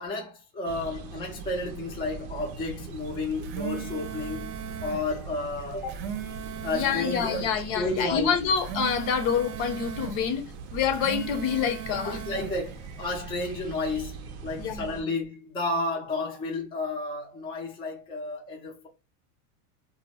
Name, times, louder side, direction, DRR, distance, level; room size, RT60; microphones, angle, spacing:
voice 1, 0.0-4.5 4.8-6.1 6.6-7.5 7.7-8.3 12.1-18.9, left 2 dB, 10° left, 0.4 m, -32 dB
sound 1, 0.7-15.0, right 5 dB, 45° right, 0.5 m, -41 dB
sound 2, 3.2-5.0 5.7-7.5 8.4-10.2 10.8-12.5, right 8 dB, 85° right, 0.7 m, -38 dB
voice 2, 6.7-10.4 10.7-12.2 14.6-15.1, left 7 dB, 60° left, 0.7 m, -27 dB
2.1 x 2.0 x 3.5 m
supercardioid pair, 135°, 47 cm